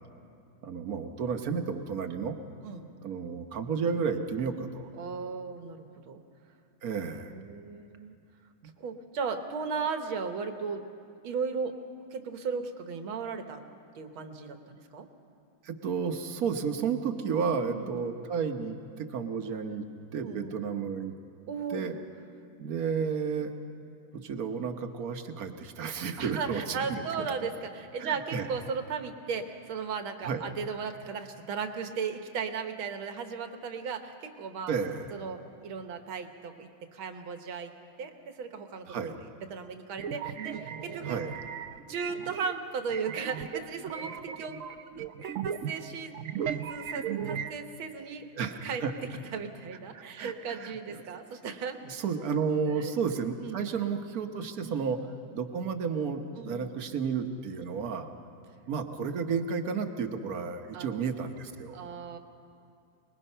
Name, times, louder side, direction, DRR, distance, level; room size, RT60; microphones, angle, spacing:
voice 1, 0.6-2.3 3.0-4.9 6.8-7.3 8.6-8.7 15.6-19.8 20.1-21.1 21.7-22.0 22.6-23.5 24.1-27.0 27.4-27.5 28.0-28.5 30.2-30.4 34.7-35.1 38.9-39.2 41.0-41.3 48.3-48.9 49.9-51.2 51.8-55.0 55.3-58.1 58.7-61.8, right 6 dB, 50° right, 6 dB, 1.4 m, -32 dB
voice 2, 5.0-6.2 7.3-8.1 8.8-10.8 11.2-11.8 12.1-13.7 14.0-15.1 17.6-17.9 20.2-20.5 21.5-22.0 26.2-34.7 35.1-37.7 38.0-39.2 39.5-41.2 41.9-44.6 45.2-46.2 46.7-48.3 48.6-51.8 52.7-52.9 53.4-53.7 54.6-54.8 56.4-56.7 60.7-61.0 61.7-62.2, right 5 dB, 85° right, 7 dB, 2.0 m, -36 dB
sound 1, 40.0-42.5 42.9-47.5, right 8 dB, 70° right, 0.7 m, -36 dB
24.5 x 20.5 x 5.6 m, 2.5 s
omnidirectional pair, 2.2 m